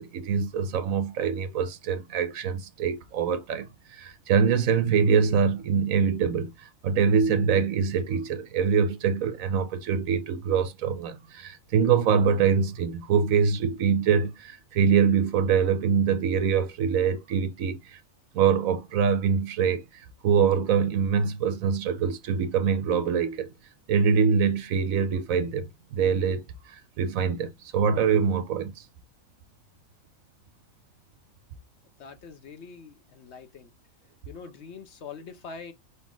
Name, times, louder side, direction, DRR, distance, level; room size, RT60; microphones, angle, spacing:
voice 1, 0.0-18.0 18.3-23.5 23.9-28.8, right 6 dB, 80° right, 1.1 m, -24 dB
voice 2, 32.0-33.7 34.3-35.7, left 5 dB, 60° left, 1.0 m, -43 dB
5.4 x 4.1 x 2.3 m
omnidirectional pair, 1.4 m